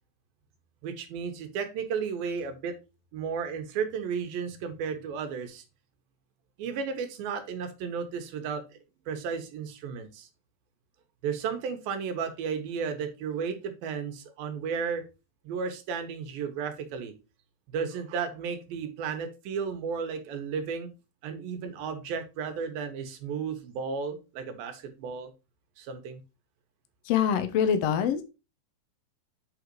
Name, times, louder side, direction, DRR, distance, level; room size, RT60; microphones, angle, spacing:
voice 1, 0.8-2.8 3.1-5.6 6.6-8.6 9.1-10.3 11.2-15.0 15.4-17.1 17.7-20.9 21.2-25.3 25.8-26.2, right 6 dB, 85° right, 6 dB, 3.0 m, -33 dB
voice 2, 27.0-28.2, left 8 dB, 80° left, 9 dB, 1.4 m, -24 dB
8.0 x 4.0 x 4.6 m, 0.28 s
omnidirectional pair, 4.1 m